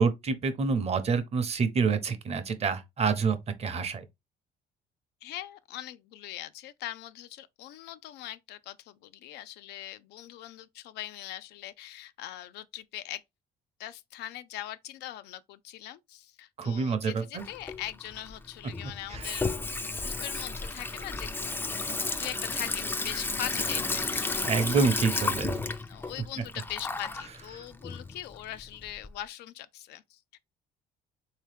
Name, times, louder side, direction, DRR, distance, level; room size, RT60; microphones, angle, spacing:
voice 1, 0.0-4.0 16.6-17.5 19.1-19.3 24.4-25.6 27.6-27.7, right 5 dB, 40° right, 0.7 m, -27 dB
voice 2, 5.2-13.2 13.8-19.5 19.8-21.3 22.2-25.2 25.9-30.4, left 13 dB, 80° left, 0.4 m, -41 dB
Water tap faucet / Sink (filling or washing), 17.4-29.1, left 3 dB, 15° left, 0.4 m, -33 dB
3.6 x 2.9 x 3.3 m
cardioid pair, 110°, 17 cm